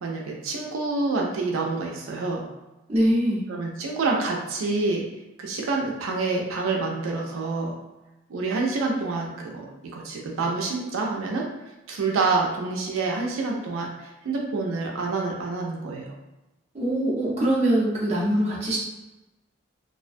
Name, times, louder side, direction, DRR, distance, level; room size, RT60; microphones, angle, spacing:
voice 1, 0.0-2.4 3.5-5.0 5.4-7.8 8.3-9.7 9.9-11.5 11.9-16.1, right 3 dB, 85° right, 0 dB, 0.4 m, -27 dB
voice 2, 2.9-3.4 16.7-18.8, right 1 dB, 30° right, -6 dB, 0.6 m, -23 dB
2.4 x 2.1 x 2.5 m, 1.0 s
head